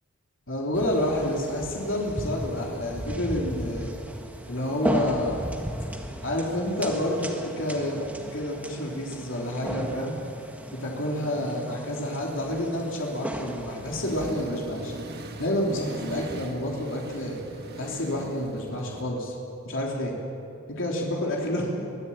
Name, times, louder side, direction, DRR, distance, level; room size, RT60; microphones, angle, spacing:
voice 1, 0.5-3.9 4.4-5.4 6.2-8.0 8.3-10.1 10.7-14.9 15.4-17.4 17.7-19.4 19.6-20.1 20.7-21.8, left 1 dB, 65° left, -2 dB, 3.3 m, -29 dB
sound 1, 0.7-14.3, right 1 dB, 5° right, 1.7 m, -36 dB
Accelerating revving vroom, 13.8-19.0, right 1 dB, 50° right, 1.6 m, -41 dB
23.0 x 15.0 x 8.7 m, 2.7 s
head